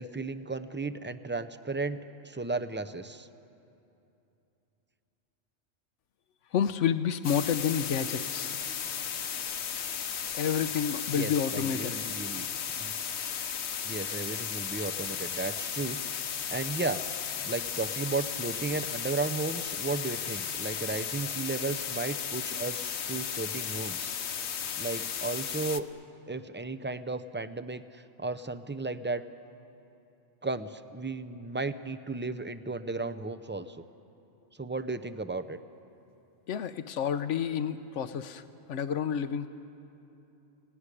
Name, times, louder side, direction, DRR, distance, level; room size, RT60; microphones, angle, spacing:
voice 1, 0.0-3.3 11.1-12.5 12.8-12.9 13.8-17.1 17.4-24.1 24.8-25.9 26.3-29.2 30.4-33.7 34.6-35.6, right 3 dB, 15° right, 10 dB, 0.5 m, -34 dB
voice 2, 6.5-8.6 10.3-12.0 36.5-39.5, left 8 dB, 90° left, 11 dB, 1.1 m, -29 dB
sound 1, 7.2-25.8, left 8 dB, 70° left, 1.1 m, -35 dB
27.5 x 18.0 x 9.9 m, 2.9 s
omnidirectional pair, 1.2 m